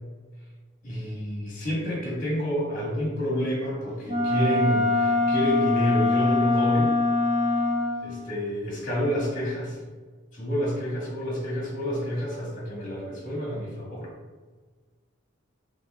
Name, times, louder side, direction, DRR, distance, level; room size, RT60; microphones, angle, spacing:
voice 1, 0.8-6.9 8.0-9.8 10.3-14.1, equal, 40° left, -3 dB, 1.3 m, -29 dB
Wind instrument woodwind instrument, 4.1-8.1, left 2 dB, 30° right, 1.3 m, -23 dB
7.0 x 2.6 x 2.3 m, 1.4 s
head